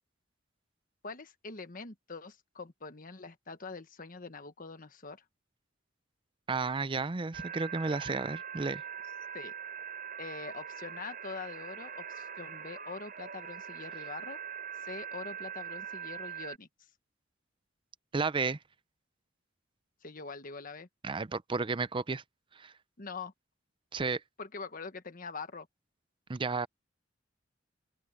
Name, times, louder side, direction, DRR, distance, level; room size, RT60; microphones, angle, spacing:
voice 1, 1.0-5.2 9.3-9.5 10.2-14.4 14.8-16.7 20.0-20.9 23.0-23.3 24.4-25.7, left 4 dB, 45° left, 1.4 m, -44 dB
voice 2, 6.5-8.8 18.1-18.6 21.0-22.2 22.5-22.7 23.9-24.2 26.3-26.7, right 4 dB, 25° right, 0.5 m, -32 dB
sound 1, 7.3-16.6, right 8 dB, 50° right, 3.7 m, -42 dB
open air
head